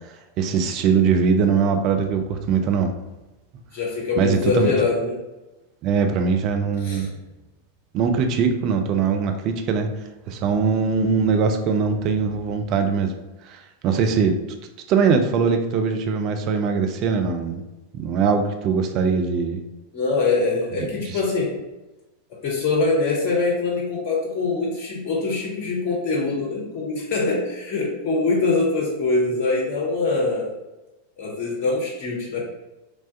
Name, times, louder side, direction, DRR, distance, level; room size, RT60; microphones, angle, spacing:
voice 1, 0.4-2.9 4.2-4.7 5.8-7.1 7.9-9.9 10.3-13.1 13.5-14.3 14.9-17.6 17.9-19.6 20.8-21.2, right 5 dB, 40° right, 6 dB, 0.4 m, -21 dB
voice 2, 3.7-5.1 6.8-7.1 19.9-21.5 22.4-30.5 31.2-32.4, left 3 dB, 45° left, -3 dB, 0.6 m, -23 dB
3.1 x 2.2 x 2.7 m, 1.0 s
figure-of-eight pair, 90°, 0 cm